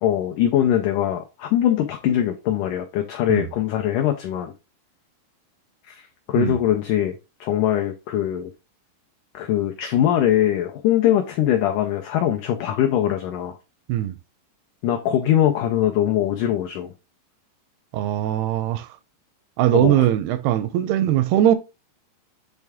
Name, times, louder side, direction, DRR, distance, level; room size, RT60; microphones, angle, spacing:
voice 1, 0.0-4.5 5.9-8.5 9.3-13.6 14.8-16.9 19.7-20.1, left 11 dB, 90° left, 1.8 m, -22 dB
voice 2, 17.9-18.9 19.6-21.6, right 12 dB, 85° right, 2.6 m, -20 dB
8.0 x 3.3 x 3.5 m
omnidirectional pair, 4.5 m